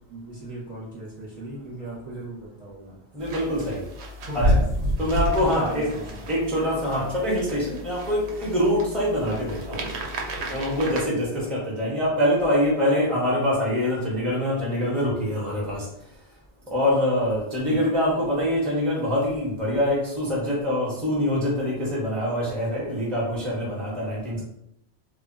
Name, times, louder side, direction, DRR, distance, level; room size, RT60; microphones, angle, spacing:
voice 1, 0.1-3.0 4.2-4.6 4.9-5.1 5.3-6.2 17.6-17.8 23.9-24.4, right 1 dB, 45° right, -7 dB, 0.8 m, -37 dB
voice 2, 3.1-3.9 4.3-4.4 5.0-5.9 6.3-9.8 10.5-15.8 16.7-24.4, left 1 dB, ahead, -5 dB, 0.7 m, -24 dB
sound 1, 3.2-11.0, equal, 75° right, 0.8 m, -30 dB
2.2 x 2.1 x 3.6 m, 0.79 s
omnidirectional pair, 1.1 m